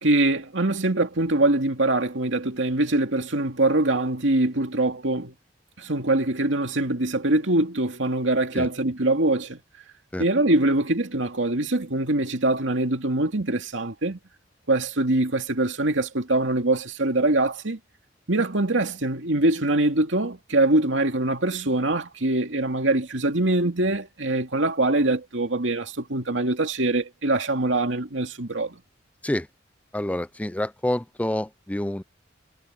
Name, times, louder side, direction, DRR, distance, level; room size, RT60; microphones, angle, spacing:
voice 1, 0.0-5.3 5.8-9.6 10.2-14.2 14.7-17.8 18.3-28.8, right 2 dB, 75° right, 2.6 m, -23 dB
voice 2, 29.9-32.0, left 1 dB, 10° left, 0.5 m, -27 dB
head